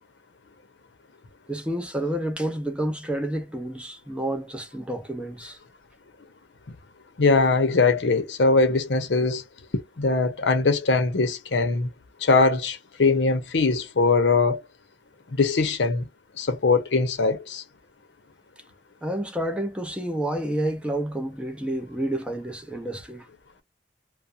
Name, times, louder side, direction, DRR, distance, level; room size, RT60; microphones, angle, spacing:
voice 1, 1.5-5.6 19.0-23.3, right 1 dB, 5° right, 0.5 m, -29 dB
voice 2, 7.2-9.4 9.7-11.9 12.2-14.6 15.4-16.1 16.4-17.6, left 3 dB, 90° left, 0.7 m, -21 dB
2.4 x 2.1 x 2.6 m
head